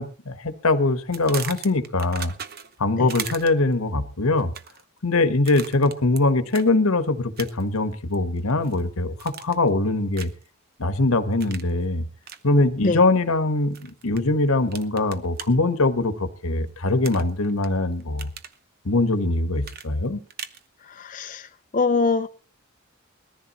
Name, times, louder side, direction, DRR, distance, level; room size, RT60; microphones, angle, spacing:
voice 1, 0.0-2.3 2.8-4.5 5.0-10.3 10.8-12.0 12.4-18.3 18.8-20.2, left 2 dB, 90° left, 1.4 m, -22 dB
sound 1, 1.1-2.8 3.1-3.7 4.4-4.8 5.5-6.2 6.5-6.7 7.4-7.8 8.1-8.8 9.2-9.7 10.1-10.5 11.4-11.7 12.2-12.4 13.7-14.2 14.7-15.5 17.0-17.7 18.0-18.6 19.6-20.6, right 8 dB, 45° right, 0.9 m, -37 dB
voice 2, 20.8-22.3, left 4 dB, 40° left, 0.6 m, -24 dB
21.0 x 14.0 x 3.1 m
head